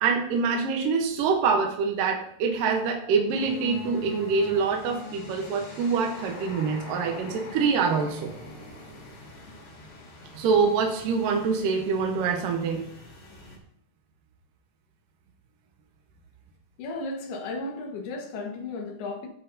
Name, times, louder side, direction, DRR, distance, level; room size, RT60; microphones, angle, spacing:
voice 1, 0.0-8.3 10.3-12.9, right 5 dB, 65° right, 2.4 m, -25 dB
sound 1, 3.3-13.6, left 2 dB, 40° left, 2.5 m, -43 dB
voice 2, 16.8-19.3, left 3 dB, 75° left, 3.5 m, -34 dB
15.5 x 9.3 x 2.8 m
omnidirectional pair, 4.7 m